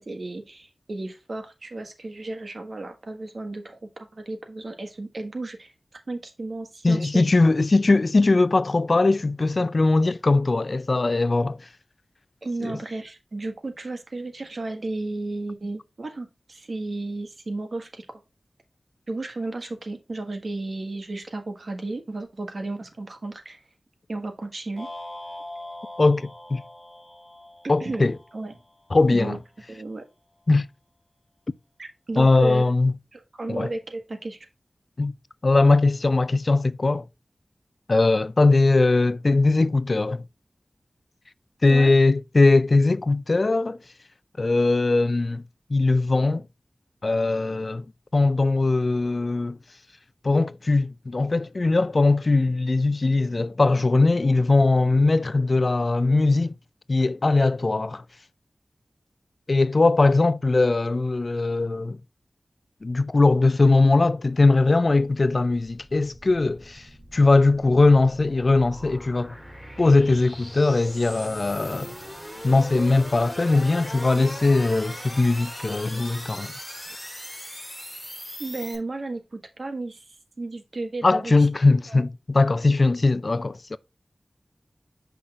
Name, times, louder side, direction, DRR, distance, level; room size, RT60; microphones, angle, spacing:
voice 1, 0.0-7.3 12.4-18.1 19.1-23.6 24.1-24.9 27.6-28.5 29.1-29.4 29.7-30.0 31.8-32.6 33.1-34.5 41.7-41.9 78.4-80.0 80.4-81.5 81.9-82.1, right 2 dB, 70° right, 1.5 m, -33 dB
voice 2, 6.8-11.6 12.6-12.7 26.0-26.6 27.7-28.2 28.9-29.4 30.5-30.7 32.2-32.9 33.5-33.7 35.0-35.1 35.4-37.0 37.9-40.2 41.6-43.8 44.4-45.4 45.7-46.4 47.0-47.9 48.1-49.6 50.2-56.5 56.9-58.0 59.5-62.0 62.8-66.9 67.1-69.3 69.8-71.9 72.4-76.5 81.0-83.8, left 3 dB, 55° left, 0.4 m, -20 dB
sound 1, 24.8-29.1, left 1 dB, 25° left, 2.7 m, -42 dB
sound 2, 65.5-78.8, equal, 5° left, 4.0 m, -40 dB
7.6 x 5.6 x 2.5 m
cardioid pair, 45°, 0 cm